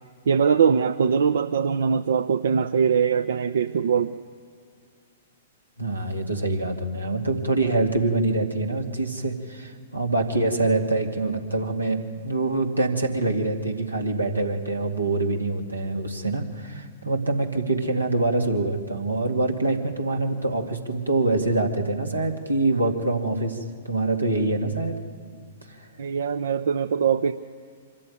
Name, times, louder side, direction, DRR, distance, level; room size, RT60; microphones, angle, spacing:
voice 1, 0.3-4.1 26.0-27.3, right 6 dB, 65° right, 11 dB, 0.6 m, -22 dB
voice 2, 5.8-25.0 25.8-25.9, right 2 dB, 90° right, 3 dB, 2.2 m, -25 dB
25.0 x 14.0 x 9.5 m, 2.2 s
figure-of-eight pair, 110°, 0 cm